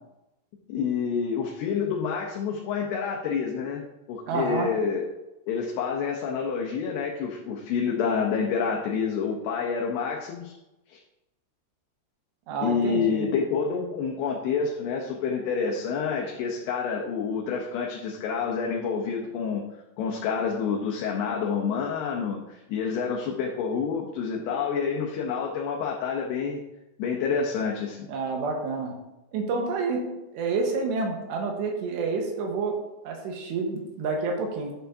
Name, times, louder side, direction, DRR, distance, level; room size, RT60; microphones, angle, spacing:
voice 1, 0.7-5.1 5.5-10.6 10.9-11.0 12.6-19.6 20.0-26.6 27.0-28.1, left 6 dB, 80° left, -1 dB, 2.8 m, -28 dB
voice 2, 4.3-4.7 12.5-13.2 28.1-28.9 29.3-30.1 30.3-32.8 33.1-34.7, right 4 dB, 85° right, 1 dB, 3.4 m, -28 dB
10.5 x 6.7 x 2.7 m, 0.96 s
omnidirectional pair, 4.9 m